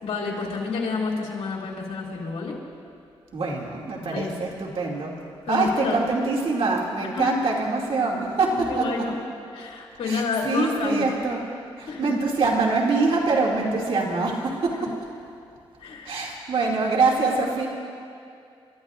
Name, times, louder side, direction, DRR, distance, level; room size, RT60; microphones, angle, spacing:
voice 1, 0.0-2.6 4.1-4.4 5.5-6.0 7.1-7.3 8.7-9.2 9.5-11.1 11.9-12.1 14.8-14.9 15.8-16.2, left 4 dB, 80° left, -2 dB, 2.7 m, -29 dB
voice 2, 3.3-5.2 5.5-8.8 10.1-11.4 11.8-14.7 16.0-17.7, right 3 dB, 65° right, -2 dB, 2.5 m, -24 dB
29.5 x 13.5 x 2.5 m, 2.5 s
cardioid pair, 75°, 11 cm